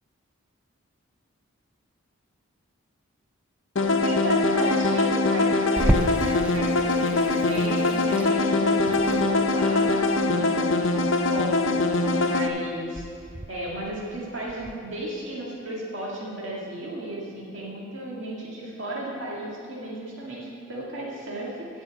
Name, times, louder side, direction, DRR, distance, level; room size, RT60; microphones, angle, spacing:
sound 1, 3.8-12.5, left 2 dB, 65° left, 0.8 m, -23 dB
voice 1, 4.0-21.8, right 1 dB, 60° right, -5 dB, 2.0 m, -34 dB
Water tap faucet / Sink (filling or washing), 5.8-14.8, equal, 5° right, 0.3 m, -33 dB
15.5 x 5.5 x 7.0 m, 2.4 s
head